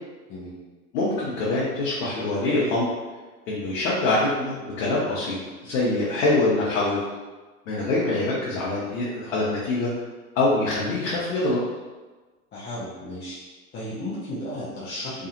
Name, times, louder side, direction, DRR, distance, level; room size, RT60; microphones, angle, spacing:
voice 1, 0.9-2.9 3.5-5.4 5.6-7.0 7.7-9.9 10.4-11.6, left 2 dB, 65° left, -7 dB, 0.9 m, -24 dB
voice 2, 12.5-13.4 13.7-15.3, left 1 dB, 25° left, -9 dB, 0.6 m, -34 dB
2.5 x 2.4 x 2.8 m, 1.3 s
hypercardioid pair, 105°, 45 cm